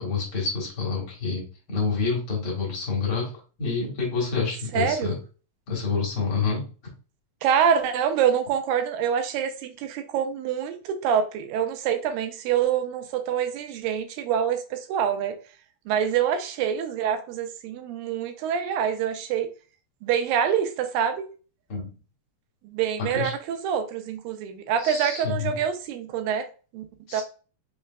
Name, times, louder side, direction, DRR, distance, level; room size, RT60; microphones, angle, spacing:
voice 1, 0.0-1.4 1.7-3.3 3.6-5.1 5.7-6.6 21.7-21.9 23.0-23.3 24.8-25.5 27.1-27.2, left 5 dB, 50° left, -3 dB, 2.0 m, -27 dB
voice 2, 4.7-5.2 7.4-15.3 15.9-19.5 20.0-21.3 22.6-26.5 26.7-26.8 27.1-27.2, right 8 dB, 85° right, 7 dB, 2.4 m, -26 dB
5.6 x 3.3 x 2.2 m, 0.36 s
omnidirectional pair, 4.0 m